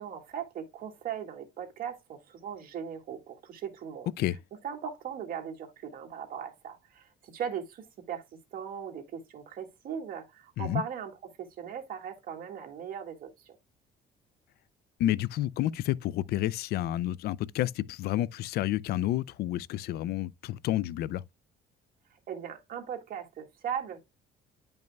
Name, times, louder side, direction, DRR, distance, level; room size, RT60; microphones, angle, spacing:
voice 1, 0.0-4.1 4.6-8.2 8.5-11.1 11.4-13.6 22.3-24.0, right 8 dB, 60° right, 1.9 m, -38 dB
voice 2, 15.0-21.2, left 13 dB, 70° left, 0.4 m, -30 dB
10.5 x 5.4 x 2.3 m
cardioid pair, 110°, 17 cm